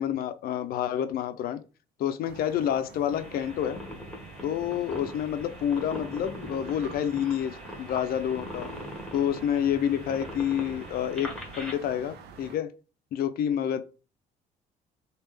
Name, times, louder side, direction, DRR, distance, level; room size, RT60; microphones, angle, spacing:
voice 1, 0.0-1.6 2.0-3.8 4.4-8.7 9.1-12.7 13.1-13.8, left 9 dB, 60° left, 0.5 m, -28 dB
sound 1, 2.2-12.6, right 6 dB, 75° right, 0.6 m, -48 dB
sound 2, 3.1-11.7, equal, 5° left, 1.3 m, -41 dB
3.4 x 2.4 x 3.2 m
cardioid pair, 110°, 17 cm